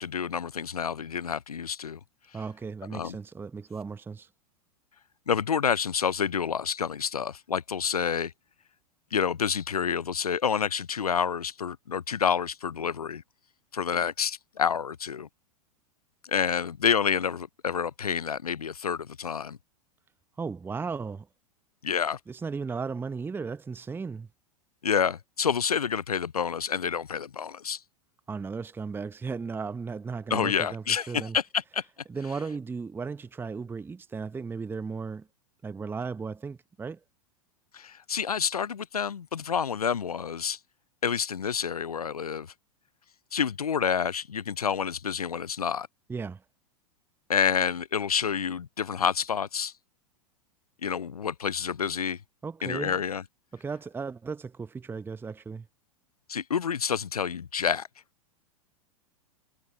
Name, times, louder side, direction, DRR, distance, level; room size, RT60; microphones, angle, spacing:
voice 1, 0.0-2.0 2.9-3.2 5.3-8.3 9.1-13.2 13.7-15.3 16.3-19.6 21.8-22.2 24.8-27.8 30.3-31.8 37.7-40.6 41.0-42.5 43.3-45.9 47.3-49.7 50.8-52.2 52.6-53.2 56.3-57.9, left 7 dB, 90° left, 0.5 m, -28 dB
voice 2, 2.3-4.3 20.4-21.3 22.3-24.3 28.3-31.4 32.1-35.3 35.6-37.0 46.1-46.4 52.4-53.0 53.5-55.7, right 5 dB, 10° right, 0.9 m, -35 dB
figure-of-eight pair, 95°, 19 cm